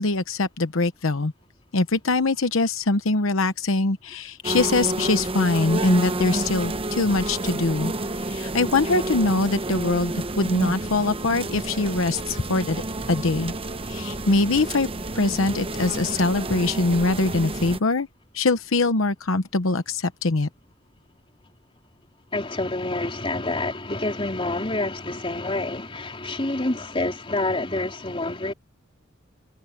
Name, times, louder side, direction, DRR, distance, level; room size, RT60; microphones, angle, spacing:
voice 1, 0.0-1.3 1.7-12.8 13.1-13.5 13.8-14.9 15.1-18.1 18.3-20.5, left 3 dB, 80° left, 1.0 m, -23 dB
sound 1, 4.4-17.8, right 2 dB, 30° right, 1.0 m, -30 dB
voice 2, 22.3-28.5, left 2 dB, 25° left, 3.9 m, -27 dB
head